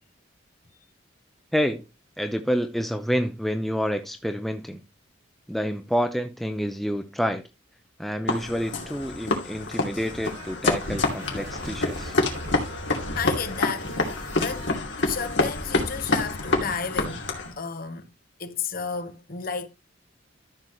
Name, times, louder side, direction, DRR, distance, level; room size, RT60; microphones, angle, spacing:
voice 1, 1.5-1.8 2.2-4.8 5.5-7.4 8.0-12.1, equal, ahead, 0.7 m, -28 dB
sound 1, 8.3-17.5, left 2 dB, 65° left, 2.5 m, -27 dB
sound 2, 9.8-14.8, right 2 dB, 70° right, 4.1 m, -42 dB
voice 2, 13.2-14.7 15.0-17.2 17.6-18.1 18.4-19.7, left 6 dB, 45° left, 1.0 m, -32 dB
13.5 x 6.2 x 3.1 m
head